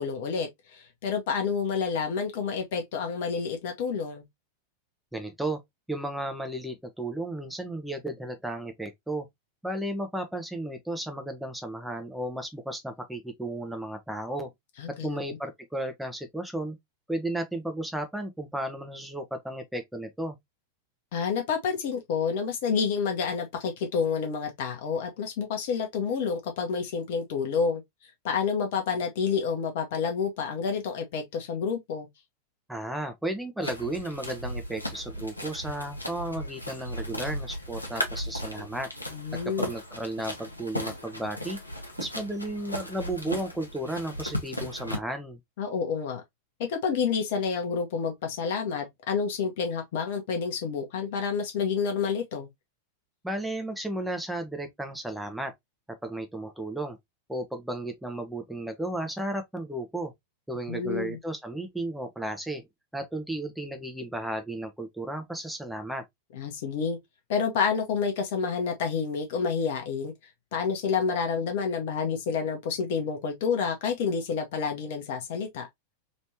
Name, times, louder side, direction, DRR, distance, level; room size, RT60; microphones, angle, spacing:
voice 1, 0.0-4.2 14.8-15.4 21.1-27.8 28.2-32.1 39.1-39.7 45.6-46.2 46.6-52.5 60.7-61.2 66.4-67.0 67.3-70.1 70.5-75.7, left 6 dB, 50° left, 1.0 m, -29 dB
voice 2, 5.1-5.6 5.9-9.3 9.6-14.5 14.9-16.8 17.1-20.4 32.7-38.9 39.6-41.6 42.0-45.4 53.2-55.5 56.0-57.0 57.3-60.1 60.5-62.7 62.9-66.0, right 1 dB, 5° right, 0.8 m, -34 dB
sound 1, 33.6-45.0, equal, 85° left, 0.9 m, -36 dB
3.2 x 3.1 x 2.7 m
figure-of-eight pair, 90°, 0 cm